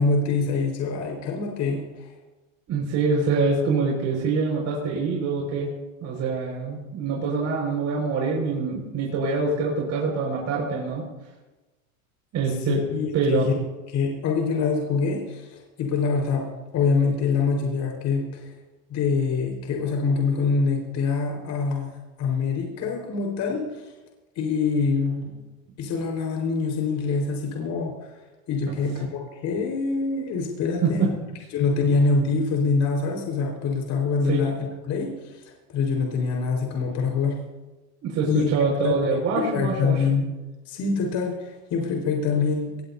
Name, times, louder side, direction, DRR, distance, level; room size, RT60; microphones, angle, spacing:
voice 1, 0.0-2.1 12.7-13.6 13.9-16.5 16.7-18.5 18.9-21.9 22.2-23.8 24.3-25.3 25.8-27.9 28.5-31.1 31.5-35.4 35.7-37.4 38.3-38.5 38.8-40.3 40.7-42.8, left 4 dB, 45° left, 0 dB, 5.0 m, -25 dB
voice 2, 2.7-5.7 6.0-11.0 12.3-12.8 13.1-13.6 30.8-31.1 34.3-34.4 38.0-40.0, right 4 dB, 40° right, -3 dB, 5.9 m, -25 dB
23.0 x 20.5 x 2.9 m, 1.2 s
supercardioid pair, 120°, 40 cm